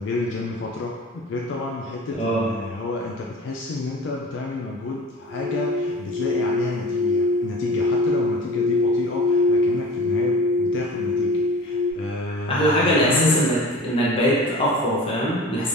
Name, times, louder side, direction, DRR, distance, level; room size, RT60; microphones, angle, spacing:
voice 1, 0.0-13.5, left 3 dB, 65° left, -2 dB, 0.3 m, -30 dB
voice 2, 2.1-2.5 12.5-13.6 13.8-15.7, equal, 30° left, -6 dB, 0.8 m, -21 dB
sound 1, 5.3-11.9, left 2 dB, 30° right, 0.7 m, -23 dB
3.5 x 3.2 x 2.6 m, 1.5 s
head